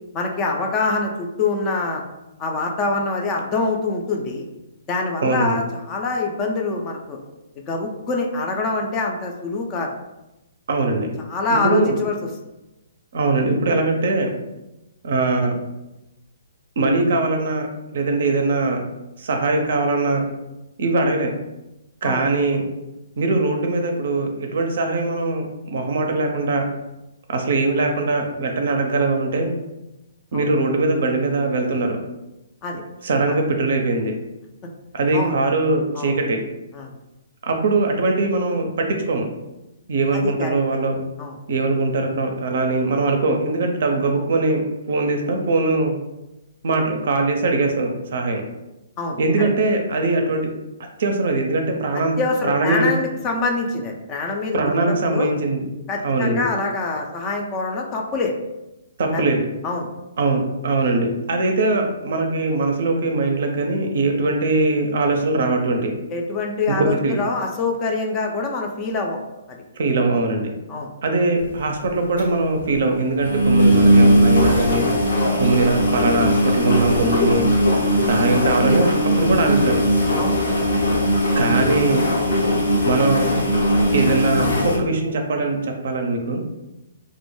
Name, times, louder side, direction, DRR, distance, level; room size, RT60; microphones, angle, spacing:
voice 1, 0.1-2.0 2.4-4.5 4.9-7.2 7.7-9.9 11.3-12.1 22.0-22.2 30.3-30.5 32.6-32.8 33.3-33.4 35.1-35.4 35.9-36.2 36.7-36.9 40.1-40.6 41.2-41.3 49.0-49.5 52.2-54.6 54.8-55.3 55.9-58.3 59.1-59.3 59.6-59.9 66.1-69.2 69.5-69.6 70.7-70.9 80.2-80.4, left 3 dB, 25° left, 1 dB, 0.4 m, -25 dB
voice 2, 5.2-5.6 10.7-11.1 11.6-12.0 13.1-14.3 15.0-15.6 16.8-17.7 17.9-18.8 19.2-20.2 20.8-21.3 22.0-22.7 23.2-26.7 27.3-29.5 30.3-32.0 33.0-34.1 34.9-36.4 37.4-39.3 39.9-41.0 41.5-45.9 46.6-48.4 49.2-50.5 51.0-52.2 52.4-52.9 54.5-55.7 56.0-56.4 59.0-59.5 60.2-65.9 66.8-67.2 69.8-70.6 71.0-74.9 75.4-77.4 78.1-78.9 79.2-79.9 81.3-82.1 82.8-83.3 83.9-86.4, right 2 dB, 60° right, 3 dB, 0.4 m, -21 dB
sound 1, 71.4-71.6 71.8-71.9 72.2-72.3 72.6-72.7 73.2-84.8, equal, 70° left, 0.7 m, -18 dB
2.1 x 2.1 x 3.0 m, 0.97 s
figure-of-eight pair, 130°, 0 cm